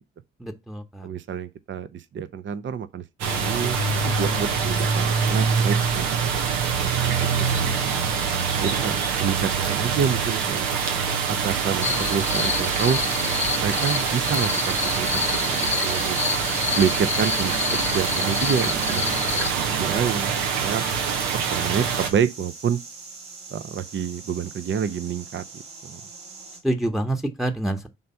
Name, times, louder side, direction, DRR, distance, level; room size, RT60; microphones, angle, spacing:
voice 1, 0.4-1.1 26.6-27.9, right 1 dB, ahead, 1.0 m, -27 dB
voice 2, 1.0-6.1 6.8-8.2 8.5-10.7 11.3-13.0 13.6-16.2 16.8-20.3 20.6-20.8 21.3-22.8 23.5-26.0, right 7 dB, 40° right, 0.6 m, -28 dB
sound 1, 3.2-22.1, right 6 dB, 80° right, 0.9 m, -25 dB
sound 2, 11.8-19.5, left 7 dB, 25° left, 0.4 m, -29 dB
sound 3, 13.0-26.6, right 4 dB, 65° right, 2.2 m, -43 dB
5.4 x 3.4 x 5.5 m
hypercardioid pair, 50°, 30 cm